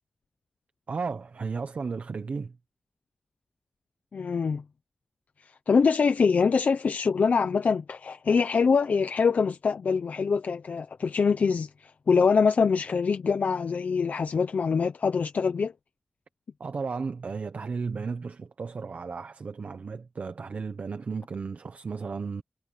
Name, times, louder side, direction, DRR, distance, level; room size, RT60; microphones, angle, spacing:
voice 1, 0.9-2.6 16.6-22.4, right 5 dB, 75° right, 1.1 m, -34 dB
voice 2, 4.1-4.6 5.7-15.7, left 5 dB, 85° left, 0.7 m, -24 dB
wide cardioid pair, 80°, 3 cm